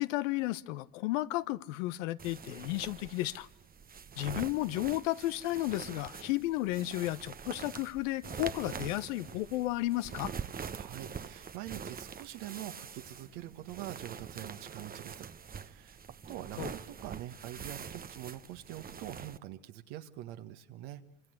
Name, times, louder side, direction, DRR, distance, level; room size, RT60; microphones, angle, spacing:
voice 1, 0.0-3.5 4.2-10.3 16.6-16.7, left 17 dB, 70° left, 14 dB, 1.2 m, -33 dB
sound 1, 2.2-19.4, right 6 dB, 20° right, 1.0 m, -44 dB
voice 2, 10.7-15.3 15.6-21.0, right 13 dB, 65° right, 7 dB, 1.8 m, -44 dB
27.0 x 26.0 x 8.0 m, 0.85 s
hypercardioid pair, 85°, 39 cm